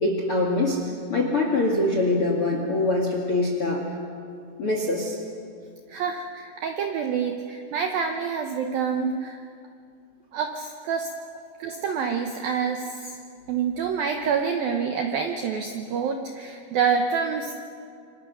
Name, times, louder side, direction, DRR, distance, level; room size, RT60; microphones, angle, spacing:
voice 1, 0.0-3.8 4.6-5.2, left 2 dB, 50° left, 1 dB, 1.7 m, -24 dB
voice 2, 5.9-9.4 10.3-11.1 11.6-13.2 13.5-17.5, right 6 dB, 75° right, 4 dB, 2.1 m, -27 dB
28.0 x 25.5 x 6.4 m, 2.4 s
omnidirectional pair, 5.7 m